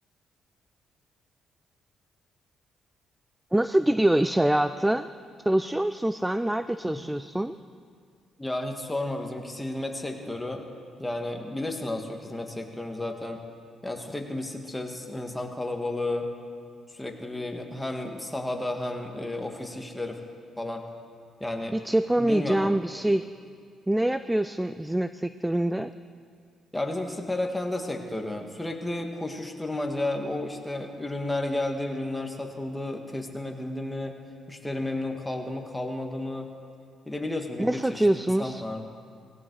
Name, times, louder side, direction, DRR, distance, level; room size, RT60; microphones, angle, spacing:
voice 1, 3.5-5.1 5.5-7.6 21.7-23.3 23.9-25.9 37.6-38.6, right 1 dB, 10° right, 12 dB, 0.4 m, -25 dB
voice 2, 8.4-10.6 11.0-13.4 13.8-16.3 16.9-20.2 20.6-20.8 21.4-21.8 22.2-22.7 26.7-34.2 34.5-36.5 37.1-38.1 38.4-38.8, left 1 dB, 10° left, 2 dB, 1.9 m, -32 dB
18.0 x 16.5 x 4.8 m, 2.2 s
cardioid pair, 90°, 0 cm